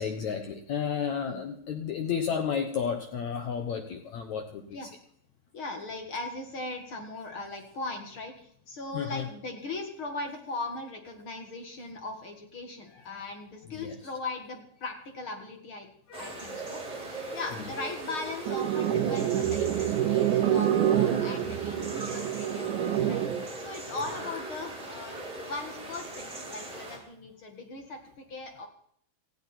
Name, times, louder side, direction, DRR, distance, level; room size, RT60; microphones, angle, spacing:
voice 1, 0.0-4.8 8.9-9.3 13.7-14.0 16.1-16.5, left 7 dB, 70° left, 6 dB, 1.7 m, -32 dB
voice 2, 5.5-15.9 16.2-23.2 23.6-28.7, left 2 dB, 45° left, 4 dB, 1.8 m, -39 dB
sound 1, 16.1-27.0, right 2 dB, 25° right, 4.7 m, -39 dB
sound 2, 18.5-23.5, right 10 dB, 65° right, 2.2 m, -27 dB
18.5 x 15.0 x 4.4 m, 0.66 s
omnidirectional pair, 4.7 m